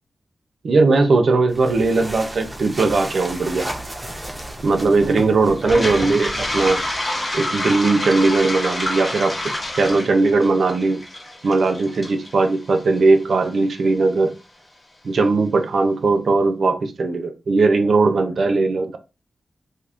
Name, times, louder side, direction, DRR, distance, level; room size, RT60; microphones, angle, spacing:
voice 1, 0.6-3.7 4.6-6.8 7.3-9.4 9.8-11.0 11.4-14.3 15.0-19.0, right 3 dB, 65° right, 0.5 m, -18 dB
sound 1, 1.5-7.0, right 1 dB, 15° right, 0.5 m, -33 dB
Toilet flush, 5.5-13.5, left 1 dB, 25° left, 1.1 m, -28 dB
3.5 x 2.5 x 2.4 m
wide cardioid pair, 125°, 0 cm